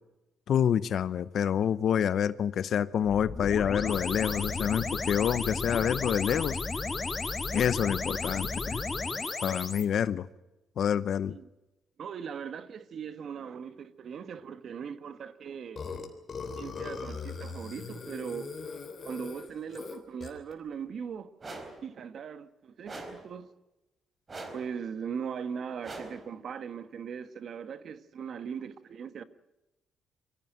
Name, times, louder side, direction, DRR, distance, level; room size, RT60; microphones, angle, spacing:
voice 1, 0.5-6.6 7.5-8.8 9.4-10.3 10.8-11.4, left 9 dB, 65° left, 0.7 m, -27 dB
sound 1, 3.0-9.8, left 3 dB, 25° left, 1.6 m, -33 dB
voice 2, 12.0-15.8 16.6-18.5 19.0-21.3 21.8-23.5 24.5-29.2, right 7 dB, 60° right, 1.4 m, -39 dB
Burping eructation, 15.8-20.5, left 5 dB, 45° left, 3.3 m, -40 dB
sound 2, 21.4-21.9 22.8-23.3 24.3-24.8 25.8-26.3, right 2 dB, 35° right, 4.0 m, -42 dB
23.0 x 15.0 x 9.2 m
cardioid pair, 90°, 0 cm